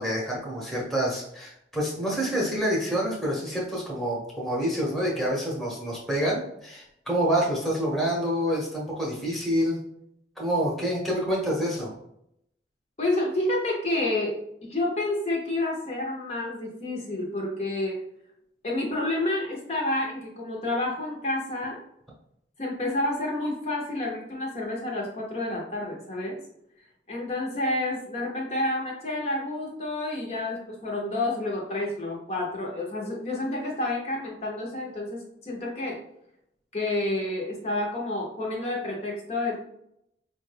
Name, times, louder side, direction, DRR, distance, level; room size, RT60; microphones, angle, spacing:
voice 1, 0.0-9.8 10.4-11.9, equal, ahead, -5 dB, 0.9 m, -27 dB
voice 2, 13.0-18.0 18.6-21.8 22.6-26.4 27.1-36.0 36.7-39.6, left 2 dB, 40° left, -2 dB, 0.7 m, -29 dB
4.8 x 2.2 x 3.3 m, 0.77 s
head